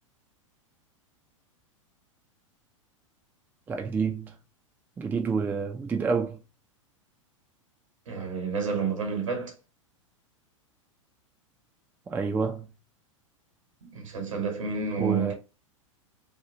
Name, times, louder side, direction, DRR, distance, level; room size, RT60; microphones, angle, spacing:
voice 1, 3.7-4.4 5.0-6.4 12.1-12.7 15.0-15.3, right 5 dB, 10° right, 0.3 m, -28 dB
voice 2, 8.1-9.5 13.8-15.3, right 5 dB, 70° right, 1.2 m, -30 dB
2.8 x 2.3 x 2.7 m
figure-of-eight pair, 95°, 17 cm